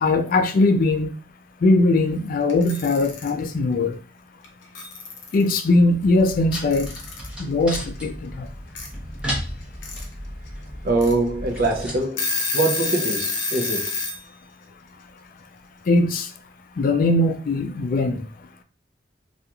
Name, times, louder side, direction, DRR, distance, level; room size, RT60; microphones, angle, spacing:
voice 1, 0.0-1.1 1.6-4.0 5.3-6.9 7.4-8.5 15.9-16.3 16.8-18.2, left 2 dB, 50° left, 0.3 m, -20 dB
Alarm / Clock, 2.5-3.3 4.4-4.5 4.7-5.6 6.7-7.3 8.7-8.9 9.6-10.0 10.5-10.6 11.0-11.1 11.6-11.7 12.0-14.2, left 3 dB, 90° left, 0.7 m, -27 dB
sound 1, 5.7-12.0, equal, 5° right, 0.6 m, -34 dB
voice 2, 10.8-13.9, right 2 dB, 55° right, 0.5 m, -23 dB
2.9 x 2.4 x 2.3 m
head